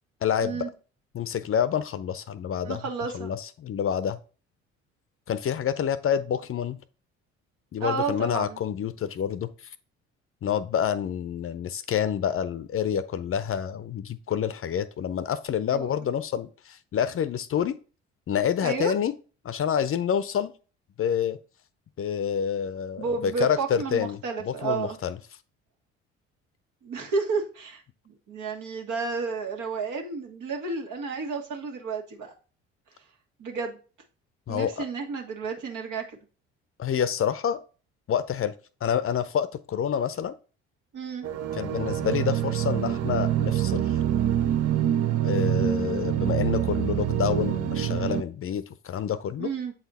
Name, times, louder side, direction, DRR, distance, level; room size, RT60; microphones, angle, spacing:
voice 1, 0.2-0.7 1.1-2.8 3.1-4.2 5.3-6.8 7.7-9.5 10.4-17.8 18.3-19.2 19.4-20.5 21.0-21.4 22.0-25.2 34.5-34.9 36.8-37.6 38.1-38.5 38.8-40.3 41.5-44.0 45.2-49.5, left 8 dB, 40° left, 14 dB, 0.7 m, -28 dB
voice 2, 2.6-3.3 7.8-8.6 15.7-15.9 18.6-18.9 23.0-25.0 26.8-32.3 33.4-33.8 34.5-36.0 40.9-41.3 49.4-49.7, right 4 dB, 60° right, 3 dB, 1.7 m, -31 dB
sound 1, 41.2-48.2, right 11 dB, 45° right, 0.7 m, -26 dB
7.7 x 4.1 x 4.2 m, 0.37 s
hypercardioid pair, 55°, 33 cm